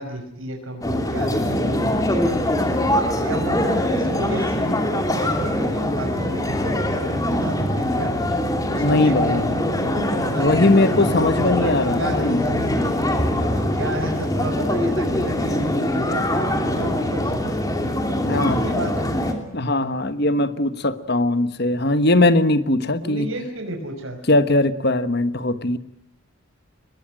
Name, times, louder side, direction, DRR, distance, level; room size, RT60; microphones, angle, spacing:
voice 1, 0.0-2.8 3.2-8.1 8.7-9.6 9.9-12.9 13.5-17.6 18.3-19.1 23.0-24.2, right 1 dB, 70° right, 3 dB, 5.8 m, -32 dB
sound 1, 0.8-19.3, left 1 dB, 15° left, 2.8 m, -23 dB
voice 2, 8.8-9.5 10.4-12.5 18.2-18.6 19.5-23.3 24.3-25.8, left 2 dB, 50° left, 12 dB, 1.3 m, -20 dB
23.5 x 21.0 x 9.1 m, 0.78 s
head